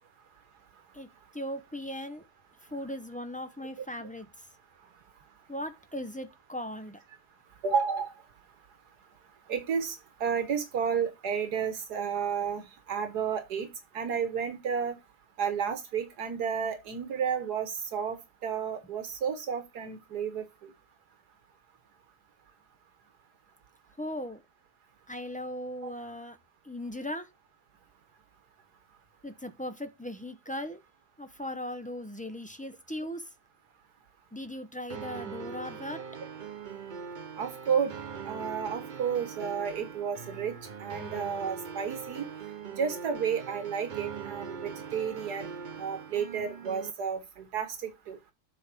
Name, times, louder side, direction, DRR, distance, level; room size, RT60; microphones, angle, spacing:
voice 1, 0.9-2.2 2.7-4.5 5.5-7.0 24.0-24.4 25.1-26.4 26.6-27.3 29.2-30.8 31.2-33.3 34.3-36.0, left 1 dB, 10° left, 0.4 m, -38 dB
voice 2, 7.6-8.1 9.5-13.7 13.9-15.0 15.4-20.7 25.8-25.9 37.4-37.9 38.2-42.3 42.8-45.5 45.8-48.2, right 7 dB, 80° right, 1.7 m, -32 dB
sound 1, 34.9-46.9, right 6 dB, 40° right, 0.8 m, -41 dB
8.2 x 4.1 x 6.1 m
omnidirectional pair, 1.7 m